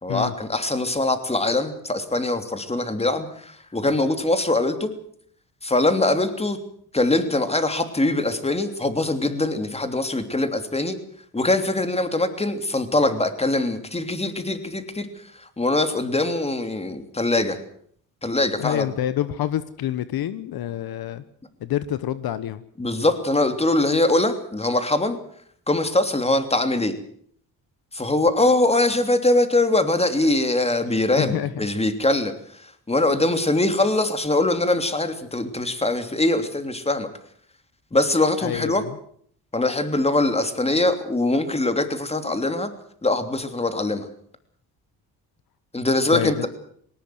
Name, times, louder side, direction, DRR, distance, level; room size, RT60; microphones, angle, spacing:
voice 1, 0.0-4.9 5.6-6.6 6.9-11.0 11.3-17.6 18.2-18.9 22.8-25.2 25.7-27.0 27.9-37.1 37.9-38.8 39.5-42.7 43.0-44.1 45.7-46.5, left 2 dB, 15° left, 8 dB, 3.1 m, -22 dB
voice 2, 18.6-21.2 21.6-22.6 31.2-31.7 38.4-39.0 46.1-46.5, left 11 dB, 70° left, 14 dB, 1.2 m, -27 dB
19.5 x 19.0 x 7.8 m, 0.62 s
cardioid pair, 85°, 37 cm